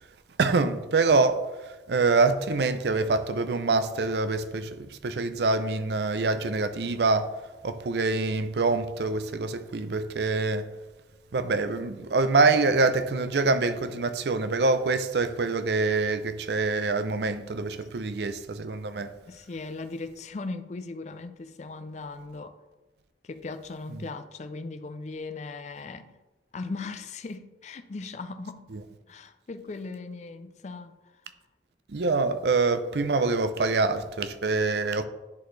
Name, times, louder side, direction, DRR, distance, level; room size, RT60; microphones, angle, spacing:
voice 1, 0.4-7.3 7.6-10.7 11.3-19.1 23.9-24.0 28.7-28.8 31.9-35.0, right 3 dB, 70° right, 0.5 m, -25 dB
voice 2, 19.3-22.6 23.2-26.1 26.5-28.7 29.1-30.9, left 3 dB, 40° left, 0.4 m, -38 dB
10.5 x 4.1 x 3.2 m
head